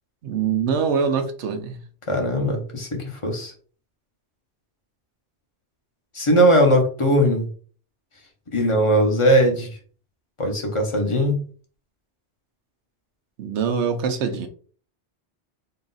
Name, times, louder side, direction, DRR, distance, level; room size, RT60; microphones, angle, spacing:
voice 1, 0.2-1.8 13.4-14.5, right 6 dB, 75° right, 7 dB, 0.9 m, -24 dB
voice 2, 2.1-3.5 6.1-7.5 8.5-9.8 10.4-11.4, equal, 30° left, 2 dB, 0.9 m, -19 dB
3.8 x 2.4 x 3.9 m, 0.43 s
omnidirectional pair, 1.2 m